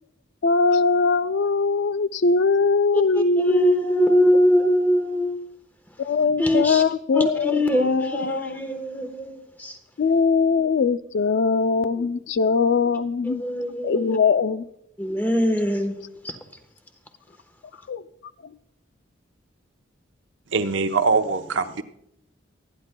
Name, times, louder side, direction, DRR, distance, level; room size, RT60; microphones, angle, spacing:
voice 1, 0.4-4.3 6.0-8.5 10.0-13.4 13.8-14.7 17.9-18.0, left 4 dB, 60° left, 0.4 m, -21 dB
voice 2, 2.9-5.4 6.4-6.8 7.1-9.8 13.2-14.2 15.0-15.9 16.2-16.3, equal, 10° left, 1.1 m, -22 dB
voice 3, 20.5-21.8, right 4 dB, 70° right, 0.8 m, -22 dB
24.5 x 10.0 x 2.2 m
head